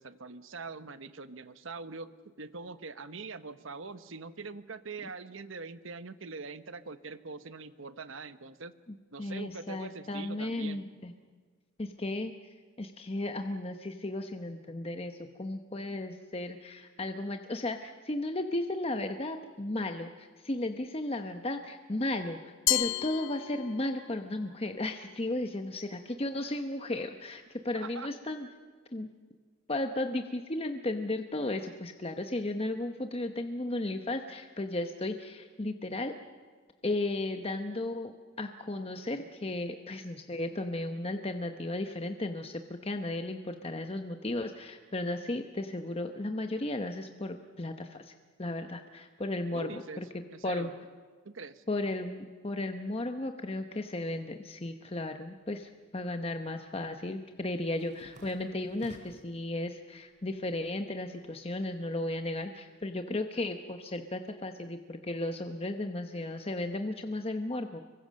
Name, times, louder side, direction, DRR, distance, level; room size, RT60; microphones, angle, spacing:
voice 1, 0.0-8.7 9.1-10.8 27.7-28.1 49.5-50.0 50.3-50.7 51.2-51.6, right 4 dB, 65° right, 12 dB, 1.0 m, -43 dB
voice 2, 9.2-11.1 11.8-12.3 12.8-28.5 28.9-29.1 29.7-36.2 36.8-48.1 48.4-50.1 50.4-50.7 51.7-67.8, left 2 dB, 25° left, 6 dB, 0.9 m, -35 dB
Glass, 22.7-24.1, left 15 dB, 60° left, 0.6 m, -31 dB
sound 1, 56.7-59.4 59.8-60.5 60.8-62.4, right 1 dB, 35° right, 3.4 m, -56 dB
25.5 x 23.0 x 6.4 m, 1.6 s
head